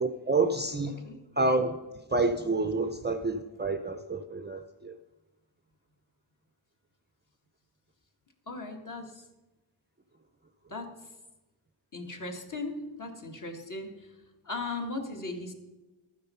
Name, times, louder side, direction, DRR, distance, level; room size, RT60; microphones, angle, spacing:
voice 1, 0.0-1.0 1.4-1.8 2.1-4.9, right 3 dB, 20° right, 0.5 m, -28 dB
voice 2, 8.5-9.2 10.7-10.9 11.9-14.1 14.4-15.5, left 2 dB, 40° left, 1.7 m, -37 dB
12.5 x 9.4 x 5.5 m
wide cardioid pair, 130°, 49 cm